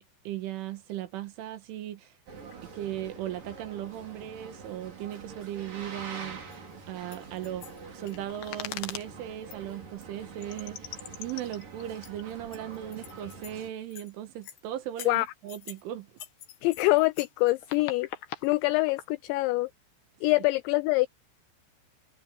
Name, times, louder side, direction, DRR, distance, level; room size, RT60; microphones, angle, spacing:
voice 1, 0.3-2.2 2.7-7.7 7.9-16.1, right 12 dB, 75° right, 3.9 m, -37 dB
Boat Water vehicle, 2.3-13.7, right 4 dB, 45° right, 6.4 m, -45 dB
sound 1, 6.5-6.6 7.1-9.1 9.5-9.6 10.0-10.1 10.4-13.5 13.9-14.1 14.4-14.6 15.0-15.8 16.2-19.1, left 11 dB, 65° left, 3.3 m, -42 dB
voice 2, 16.6-18.1 18.4-19.7 20.2-21.1, left 21 dB, 90° left, 2.5 m, -25 dB
omnidirectional pair, 5.7 m